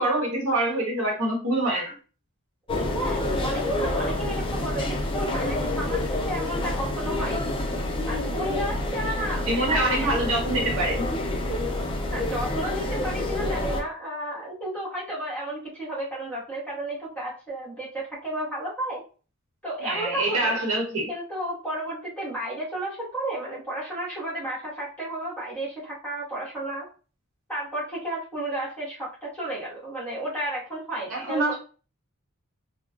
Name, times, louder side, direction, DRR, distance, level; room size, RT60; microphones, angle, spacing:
voice 1, 0.0-2.0 9.5-11.1 19.8-21.1 31.1-31.6, right 1 dB, 70° right, -2 dB, 1.2 m, -25 dB
sound 1, 2.7-13.8, left 1 dB, 25° left, 0.5 m, -28 dB
voice 2, 2.7-7.6 8.1-10.1 11.5-11.6 12.1-19.0 19.6-20.6 21.1-26.9 27.5-31.6, right 1 dB, 5° left, -8 dB, 1.5 m, -33 dB
3.3 x 2.3 x 2.4 m, 0.37 s
head